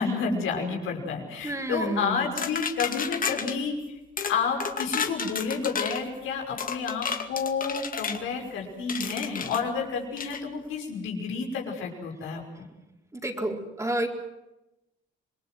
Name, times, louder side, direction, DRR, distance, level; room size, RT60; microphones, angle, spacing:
voice 1, 0.0-3.8 4.3-12.7, left 5 dB, 85° left, 1 dB, 5.6 m, -30 dB
voice 2, 1.4-2.3 13.2-14.1, right 1 dB, 15° right, 2 dB, 4.4 m, -30 dB
sound 1, 2.4-3.6 4.2-4.4 4.6-6.0 6.6-8.2 8.9-9.6 10.2-10.4, left 6 dB, 45° left, 2.4 m, -31 dB
27.0 x 21.0 x 7.8 m, 0.95 s
cardioid pair, 90°, 20 cm